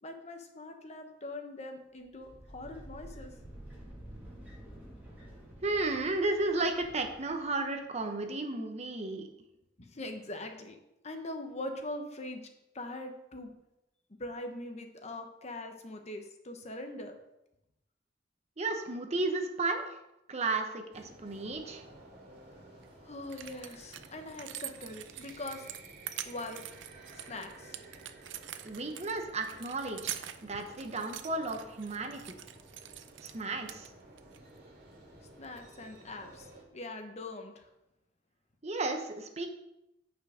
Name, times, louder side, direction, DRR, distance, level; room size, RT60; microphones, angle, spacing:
voice 1, 0.0-3.3 9.8-10.8 11.0-12.5 12.7-13.5 14.2-17.2 22.6-22.7 23.0-25.7 26.2-26.6 27.1-27.8 35.4-37.7, left 2 dB, 35° left, 5 dB, 1.0 m, -42 dB
sound 1, 2.0-7.7, right 1 dB, 10° right, 2.2 m, -50 dB
voice 2, 5.6-9.3 18.6-19.9 20.3-21.8 28.6-32.3 33.2-33.9 38.6-39.5, right 3 dB, 35° right, 5 dB, 0.9 m, -33 dB
sound 2, 20.9-36.6, right 1 dB, 55° right, 2.2 m, -54 dB
sound 3, 22.8-22.9 23.2-33.4 33.7-34.4 35.4-35.6, right 11 dB, 85° right, 0.5 m, -45 dB
8.6 x 5.6 x 5.0 m, 0.87 s
head